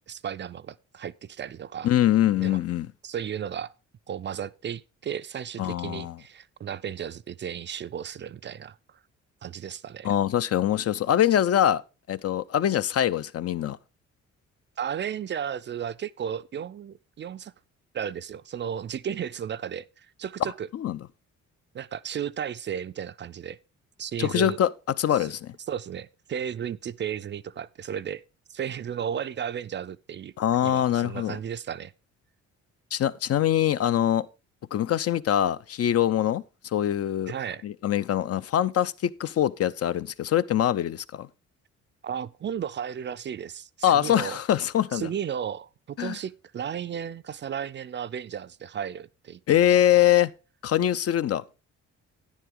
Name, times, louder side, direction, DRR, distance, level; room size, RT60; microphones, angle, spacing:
voice 1, 0.1-1.9 2.4-2.6 3.0-3.7 4.1-9.0 9.4-10.1 14.8-17.5 17.9-20.7 21.7-23.6 24.0-24.6 25.1-25.3 25.7-28.2 28.5-30.3 30.6-31.9 37.3-37.6 42.0-44.4 44.9-50.0, right 8 dB, 40° right, 0.4 m, -34 dB
voice 2, 1.8-2.9 5.6-6.2 10.0-11.8 12.1-13.8 20.7-21.0 24.2-24.7 25.0-25.5 30.4-31.4 32.9-34.3 34.7-36.4 36.7-37.3 37.6-41.3 43.8-45.1 46.0-46.2 49.5-50.3 50.6-51.4, left 11 dB, 50° left, 0.6 m, -23 dB
10.0 x 9.7 x 3.7 m
cardioid pair, 90°, 30 cm